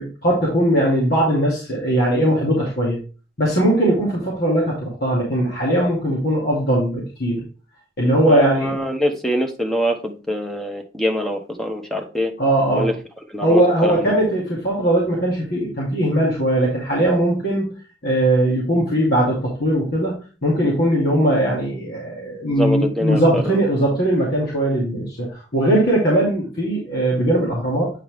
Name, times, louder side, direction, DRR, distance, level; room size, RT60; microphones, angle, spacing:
voice 1, 0.0-3.0 3.4-7.4 8.0-8.8 12.4-12.9 13.4-17.7 18.0-27.9, right 1 dB, 60° left, -5 dB, 2.6 m, -19 dB
voice 2, 8.3-12.3 12.7-12.9 13.3-14.1 22.6-23.6, equal, 5° left, 3 dB, 1.1 m, -24 dB
8.9 x 4.3 x 3.5 m, 0.35 s
head